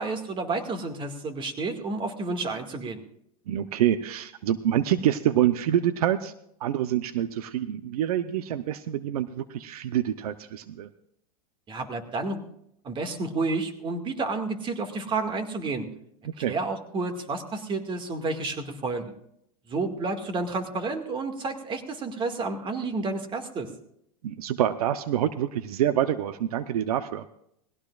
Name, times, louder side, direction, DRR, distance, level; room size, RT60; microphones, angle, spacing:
voice 1, 0.0-3.0 11.7-12.4 12.8-15.9 16.4-19.1 19.7-23.7, right 3 dB, 25° right, 6 dB, 2.0 m, -30 dB
voice 2, 3.5-6.3 6.6-10.9 16.4-16.5 24.2-27.2, right 11 dB, 75° right, 12 dB, 0.8 m, -26 dB
20.5 x 16.5 x 2.5 m, 0.73 s
supercardioid pair, 125°, 19 cm